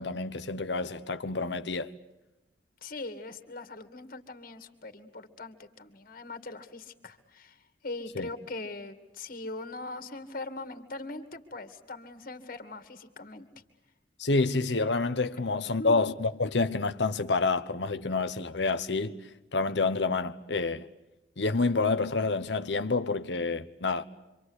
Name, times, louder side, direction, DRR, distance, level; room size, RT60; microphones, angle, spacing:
voice 1, 0.0-1.9 8.2-8.3 14.2-19.2 19.5-20.9 21.4-24.0, left 3 dB, 75° left, 1.1 m, -28 dB
voice 2, 2.8-13.5 15.8-16.0, left 2 dB, 50° left, 2.4 m, -41 dB
27.0 x 25.5 x 8.2 m
head